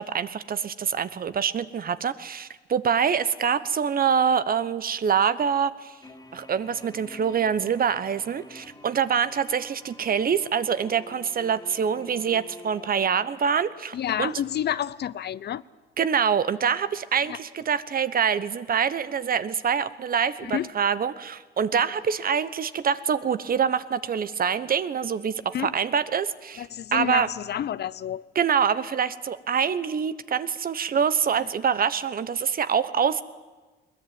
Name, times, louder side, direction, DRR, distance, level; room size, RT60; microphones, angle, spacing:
voice 1, 0.0-5.9 6.3-14.3 16.0-26.6 26.9-27.3 28.3-33.2, right 7 dB, 45° right, 1.1 m, -25 dB
sound 1, 6.0-13.8, left 2 dB, 20° left, 2.7 m, -48 dB
voice 2, 13.9-15.6 17.3-17.4 20.4-20.7 25.5-25.7 26.6-28.2, left 10 dB, 55° left, 0.7 m, -29 dB
21.5 x 19.5 x 9.4 m
cardioid pair, 90°, 20 cm